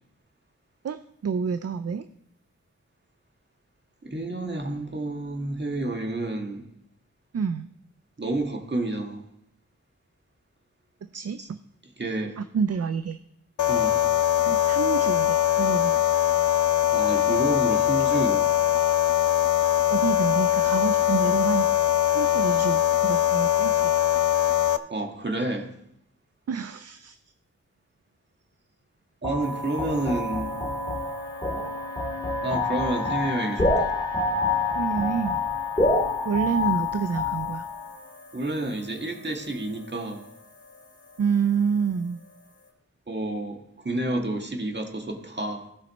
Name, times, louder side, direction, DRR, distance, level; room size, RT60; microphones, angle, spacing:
voice 1, 0.8-2.1 7.3-7.7 11.1-11.6 12.4-13.2 14.4-16.0 19.9-23.9 26.5-27.2 34.7-35.4 36.2-37.6 41.2-42.2, right 6 dB, 55° right, 0.5 m, -28 dB
voice 2, 4.0-6.6 8.2-9.2 11.4-11.5 12.0-12.4 13.7-14.0 16.9-18.5 24.9-25.7 29.2-30.6 32.4-33.9 38.3-40.3 43.1-45.7, right 2 dB, 35° right, 1.7 m, -29 dB
sound 1, 13.6-24.8, left 11 dB, 80° left, 0.6 m, -22 dB
sound 2, 29.2-38.0, left 3 dB, 15° left, 3.0 m, -27 dB
sound 3, 29.4-42.7, left 3 dB, 35° left, 2.3 m, -44 dB
16.5 x 5.6 x 4.1 m
wide cardioid pair, 100°, 31 cm